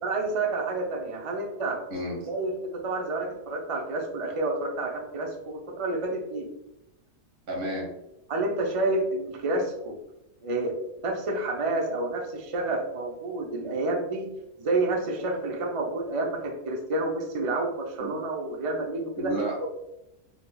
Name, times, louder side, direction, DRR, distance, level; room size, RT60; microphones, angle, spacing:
voice 1, 0.0-1.8 2.3-6.5 8.3-10.0 10.4-10.7 11.0-14.3 14.6-19.3, right 2 dB, 50° right, 0 dB, 0.4 m, -29 dB
voice 2, 7.5-7.9 18.0-18.2 19.2-19.7, right 1 dB, 85° right, -1 dB, 1.5 m, -31 dB
3.9 x 3.1 x 2.2 m, 0.90 s
omnidirectional pair, 1.4 m